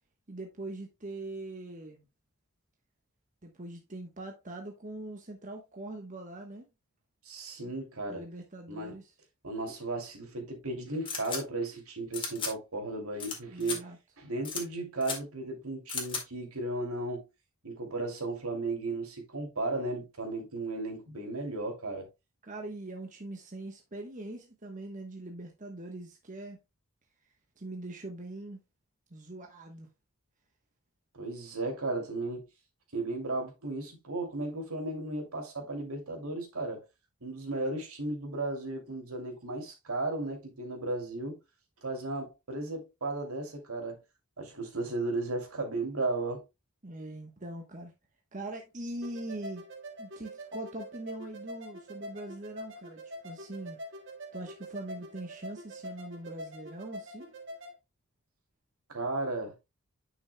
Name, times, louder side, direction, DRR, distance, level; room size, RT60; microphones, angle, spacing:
voice 1, 0.3-2.1 3.4-6.7 8.1-9.1 13.5-14.0 22.4-26.6 27.6-28.6 29.1-29.9 46.8-47.9 48.3-49.6 50.0-53.8 54.3-57.3, right 2 dB, 35° right, 1.1 m, -42 dB
voice 2, 7.2-8.2 8.7-8.9 9.4-13.9 14.2-17.2 17.6-22.1 31.2-32.5 32.9-36.9 37.2-41.4 41.8-44.0 44.4-46.4 58.9-59.5, right 2 dB, 75° right, 2.7 m, -35 dB
sound 1, 11.1-11.4 12.1-12.5 13.2-13.4 13.6-13.8 14.4-14.6 15.0-15.2 15.9-16.2, left 5 dB, 25° left, 1.9 m, -35 dB
sound 2, 49.0-57.7, equal, 55° right, 1.7 m, -45 dB
9.9 x 6.0 x 2.2 m
head